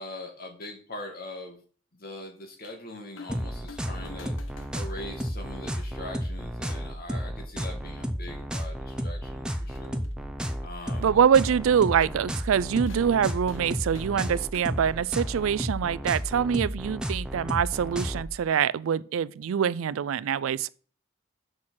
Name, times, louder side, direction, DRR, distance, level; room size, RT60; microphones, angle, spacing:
voice 1, 0.0-1.6 1.9-4.3 4.7-10.0 10.6-11.2, left 1 dB, 45° left, 2.1 m, -41 dB
sound 1, 2.6-2.8 3.2-3.4 3.7-5.8 6.7-6.8 7.8-7.9 8.2-8.3 9.6-10.2 12.9-15.3 16.5-16.6, left 4 dB, 65° left, 1.0 m, -50 dB
sound 2, 3.3-18.3, equal, 5° right, 0.7 m, -33 dB
voice 2, 11.0-20.7, right 8 dB, 80° right, 0.4 m, -24 dB
6.5 x 6.1 x 5.7 m
head